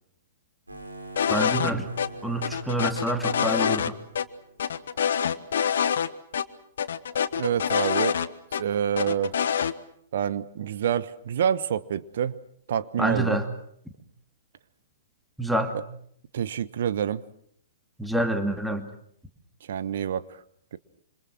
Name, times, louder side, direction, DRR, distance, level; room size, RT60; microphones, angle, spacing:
sound 1, 0.7-5.0, right 1 dB, 85° right, 7.8 m, -44 dB
sound 2, 1.2-1.7 2.0-2.1 2.4-3.9 4.2-4.3 4.6-6.1 6.3-6.4 6.8-8.6 9.0-9.7, left 8 dB, 60° left, 1.4 m, -25 dB
voice 1, 1.3-1.9 2.2-3.9 13.0-13.4 15.4-15.7 18.0-18.9, right 1 dB, ahead, 7 dB, 2.6 m, -27 dB
voice 2, 7.4-8.2 8.6-9.3 10.1-12.4 12.7-13.4 15.7-15.8 16.3-17.2 19.7-20.2 20.7-20.8, right 9 dB, 55° right, 15 dB, 1.2 m, -27 dB
27.5 x 26.0 x 6.2 m, 0.66 s
figure-of-eight pair, 115°, 0 cm